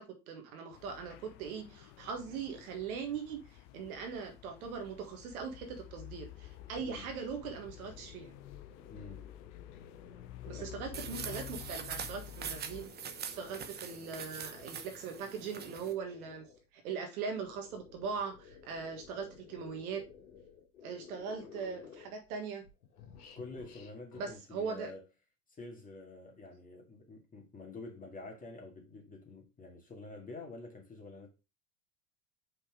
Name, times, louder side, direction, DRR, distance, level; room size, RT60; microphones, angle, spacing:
voice 1, 0.0-8.3 10.4-16.4 16.8-20.0 20.8-22.6 24.2-24.9, right 5 dB, 70° right, 1.7 m, -40 dB
sound 1, 0.7-12.9, left 13 dB, 50° left, 0.7 m, -50 dB
sound 2, 5.3-11.8 12.3-16.6 17.2-22.4 22.6-24.4, left 7 dB, 75° left, 1.8 m, -55 dB
voice 2, 8.9-9.3 10.5-10.7 23.3-25.0 25.5-31.3, left 2 dB, 15° left, 2.1 m, -48 dB
sound 3, 10.9-15.9, right 7 dB, 20° right, 0.8 m, -43 dB
5.2 x 4.3 x 4.6 m
hypercardioid pair, 90°, 46 cm